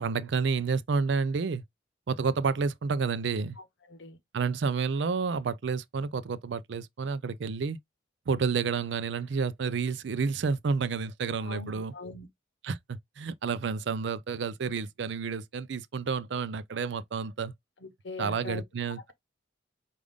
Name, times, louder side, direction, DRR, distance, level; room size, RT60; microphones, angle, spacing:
voice 1, 0.0-1.6 2.1-3.6 4.3-7.8 8.3-11.9 12.6-17.5 18.2-19.1, right 5 dB, 70° right, 0.4 m, -30 dB
voice 2, 3.6-4.2 11.4-12.3 17.8-18.6, left 3 dB, 75° left, 0.9 m, -42 dB
5.0 x 2.5 x 3.5 m
head